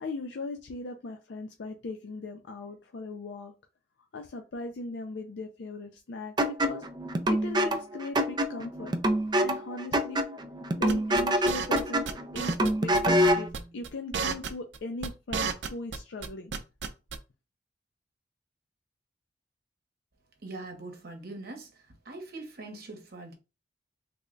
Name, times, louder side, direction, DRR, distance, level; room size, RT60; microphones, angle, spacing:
voice 1, 0.0-3.5 4.1-6.8 7.3-8.9 9.4-10.3 10.8-12.1 12.3-13.5 13.7-16.5, left 2 dB, 75° left, 0.5 m, -38 dB
sound 1, 6.4-13.5, equal, 25° right, 0.4 m, -26 dB
sound 2, 10.9-11.8 12.1-12.7 12.9-13.0 13.2-13.6 13.8-16.0 16.2-17.2, right 5 dB, 75° right, 0.5 m, -32 dB
voice 2, 20.4-21.7 22.1-23.3, right 2 dB, 60° right, 0.9 m, -42 dB
3.4 x 2.2 x 3.8 m
head